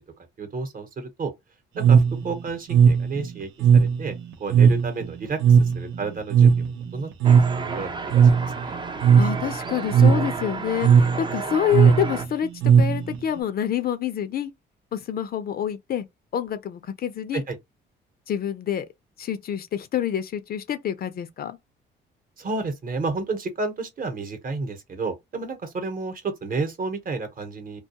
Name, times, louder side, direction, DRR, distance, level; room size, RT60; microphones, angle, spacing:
voice 1, 0.4-1.3 1.7-4.1 4.4-8.7 17.3-17.6 22.4-27.8, right 3 dB, 45° right, 0.9 m, -31 dB
sound 1, 1.8-13.4, right 7 dB, 85° right, 0.7 m, -18 dB
sound 2, 7.2-12.2, right 4 dB, 25° right, 0.4 m, -33 dB
voice 2, 9.2-12.5 12.8-14.5 14.9-16.1 16.3-17.4 18.3-18.9 19.2-21.6, left 9 dB, 50° left, 0.5 m, -27 dB
2.3 x 2.2 x 2.8 m
cardioid pair, 90°, 20 cm